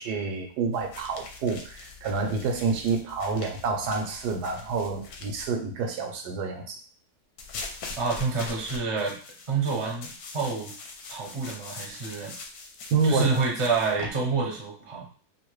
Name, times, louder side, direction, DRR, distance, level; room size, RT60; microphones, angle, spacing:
voice 1, 0.0-6.8 12.9-13.3, right 5 dB, 85° right, 4 dB, 1.2 m, -28 dB
sound 1, 0.7-5.5 7.4-14.1, left 4 dB, 75° left, 1.0 m, -42 dB
voice 2, 8.0-9.2 9.5-10.7 11.1-12.3 13.0-15.1, right 4 dB, 35° right, -2 dB, 0.5 m, -28 dB
3.0 x 2.6 x 3.1 m, 0.42 s
omnidirectional pair, 1.7 m